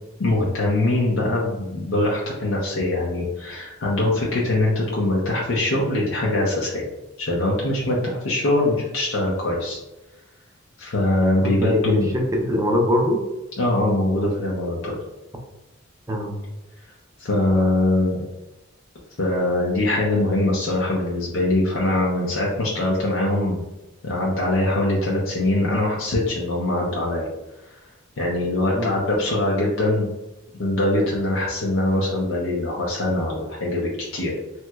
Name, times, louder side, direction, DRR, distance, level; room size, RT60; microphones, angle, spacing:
voice 1, 0.2-6.9 7.2-9.8 10.8-12.1 13.6-15.0 17.2-18.2 19.2-23.6 24.0-27.3 27.7-27.8 28.2-30.1 30.6-34.3, left 1 dB, 75° left, -4 dB, 0.6 m, -22 dB
voice 2, 11.6-13.2 16.1-16.4 28.7-28.9, equal, 15° right, 1 dB, 0.4 m, -22 dB
3.2 x 2.9 x 2.2 m, 0.97 s
head